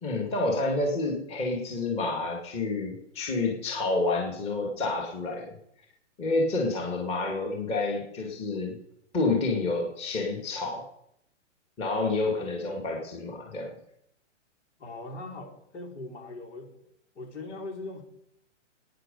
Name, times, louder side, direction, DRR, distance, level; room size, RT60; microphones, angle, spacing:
voice 1, 0.0-5.5 6.2-8.8 9.1-10.9 11.8-13.8, left 3 dB, 15° left, 0 dB, 2.0 m, -29 dB
voice 2, 14.8-16.7 17.2-18.0, left 2 dB, 65° left, 2 dB, 4.2 m, -40 dB
18.5 x 9.5 x 5.3 m, 0.74 s
hypercardioid pair, 155°, 37 cm